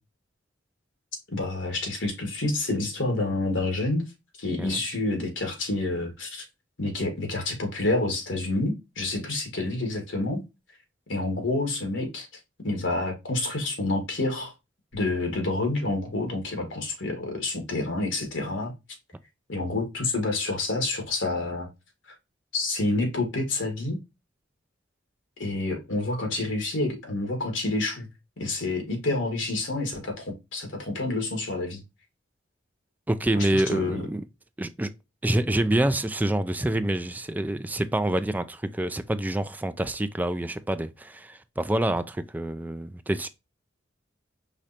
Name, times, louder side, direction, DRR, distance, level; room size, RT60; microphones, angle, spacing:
voice 1, 1.3-4.0 4.4-6.4 6.8-10.4 11.1-12.3 12.6-14.5 14.9-18.7 19.5-21.7 22.5-24.0 25.4-28.1 28.4-30.2 30.5-31.8 33.4-34.1, left 2 dB, 80° left, 1.8 m, -28 dB
voice 2, 33.1-34.2 34.6-34.9 35.2-43.3, right 1 dB, 10° right, 0.4 m, -27 dB
5.0 x 3.2 x 2.7 m
head